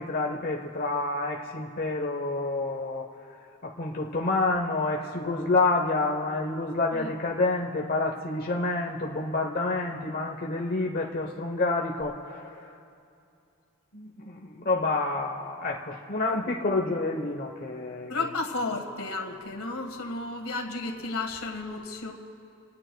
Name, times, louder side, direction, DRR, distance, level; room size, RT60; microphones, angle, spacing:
voice 1, 0.0-3.1 3.6-12.8 13.9-18.3, left 3 dB, 45° left, 0 dB, 0.9 m, -28 dB
voice 2, 18.1-22.1, left 3 dB, 80° left, 4 dB, 1.7 m, -33 dB
28.5 x 18.5 x 2.3 m, 2.6 s
head